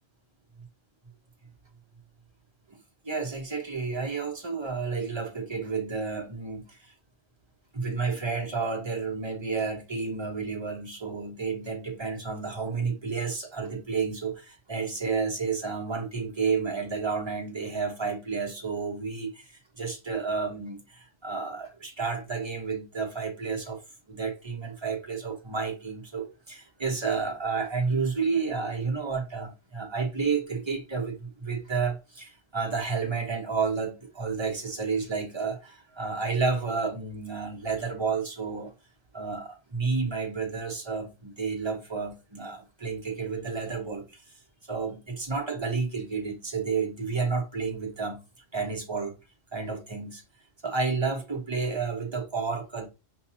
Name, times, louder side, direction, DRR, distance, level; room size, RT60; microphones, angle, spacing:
voice 1, 3.0-6.9 7.7-23.8 24.1-38.7 39.1-44.2 44.7-48.2 48.5-49.1 49.5-50.2 50.6-52.9, right 4 dB, 25° right, 0.8 m, -31 dB
6.3 x 2.3 x 2.8 m
omnidirectional pair, 1.3 m